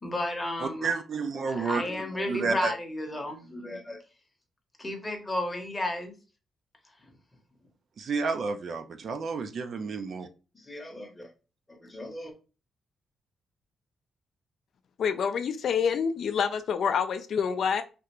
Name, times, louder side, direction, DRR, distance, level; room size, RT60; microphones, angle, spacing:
voice 1, 0.0-0.9 1.3-4.0 4.8-6.2 10.5-11.3 11.8-12.3, left 1 dB, 15° left, 0.8 m, -33 dB
voice 2, 0.6-1.9 2.3-2.7 8.0-10.3, right 4 dB, 50° right, 0.4 m, -30 dB
voice 3, 15.0-17.8, left 7 dB, 55° left, 0.3 m, -27 dB
3.3 x 2.4 x 2.9 m
wide cardioid pair, 160°, 0 cm